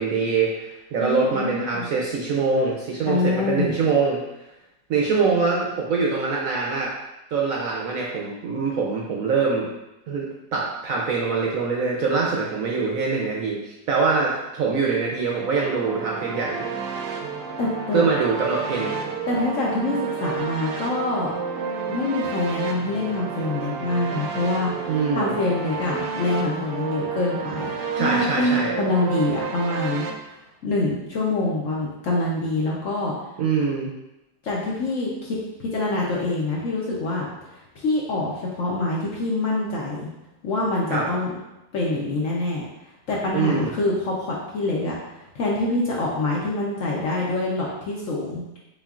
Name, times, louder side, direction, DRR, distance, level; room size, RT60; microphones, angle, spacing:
voice 1, 0.0-4.2 4.9-6.9 7.3-9.7 10.1-10.2 10.5-16.7 17.9-19.0 24.9-25.4 28.0-28.7 33.4-33.9 40.9-41.1 43.3-43.7, right 4 dB, 70° right, -2 dB, 0.8 m, -24 dB
voice 2, 1.0-1.9 3.1-3.7 17.6-18.1 19.3-21.4 21.9-30.0 30.3-33.2 34.4-37.3 37.8-40.1 40.4-41.3 41.7-42.7 43.1-48.6, left 2 dB, 60° left, -4 dB, 0.9 m, -25 dB
sound 1, 15.3-30.1, right 5 dB, 85° right, 1.2 m, -31 dB
4.3 x 3.7 x 2.3 m, 0.94 s
omnidirectional pair, 1.8 m